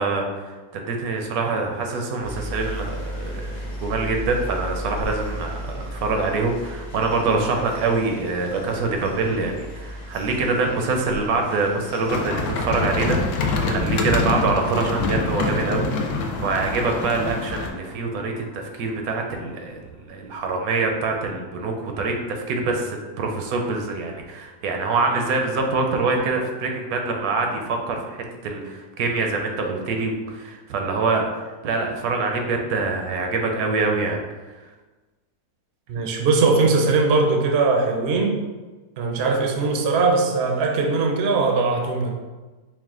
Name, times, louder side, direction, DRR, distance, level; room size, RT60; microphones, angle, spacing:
voice 1, 0.0-15.9 16.4-19.8 20.1-31.2 31.6-34.2, right 3 dB, 75° right, 2 dB, 1.1 m, -25 dB
sound 1, 2.2-17.2, equal, 55° left, 1.0 m, -36 dB
sound 2, 12.1-17.7, left 3 dB, 75° left, 1.1 m, -25 dB
sound 3, 14.1-20.1, left 1 dB, 25° left, 0.7 m, -42 dB
voice 2, 35.9-38.4 39.0-42.1, right 3 dB, 60° right, 2 dB, 0.7 m, -20 dB
4.8 x 2.1 x 3.6 m, 1.3 s
omnidirectional pair, 1.6 m